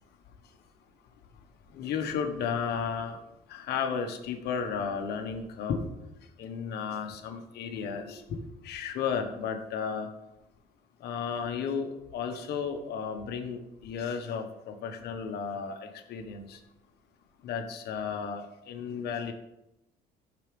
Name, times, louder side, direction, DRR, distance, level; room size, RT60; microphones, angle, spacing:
voice 1, 1.7-3.2 3.5-5.8 6.4-10.1 11.0-16.6 17.4-19.3, left 6 dB, 75° left, 5 dB, 1.4 m, -33 dB
14.5 x 6.1 x 3.5 m, 0.92 s
cardioid pair, 110°, 17 cm